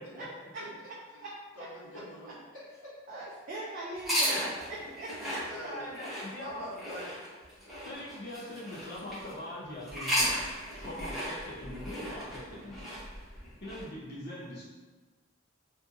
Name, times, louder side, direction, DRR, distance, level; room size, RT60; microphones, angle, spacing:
voice 1, 1.5-3.2 5.2-5.9 6.4-7.1, equal, 75° left, -10 dB, 1.2 m, -45 dB
voice 2, 3.1-5.4, right 1 dB, 40° right, -5 dB, 0.3 m, -40 dB
sound 1, 3.9-9.3 9.8-13.8, equal, ahead, 0.7 m, -35 dB
voice 3, 5.5-6.6 7.8-10.4 10.8-12.8 13.6-14.6, left 1 dB, 45° left, -6 dB, 0.5 m, -42 dB
2.6 x 2.5 x 2.4 m, 1.3 s
head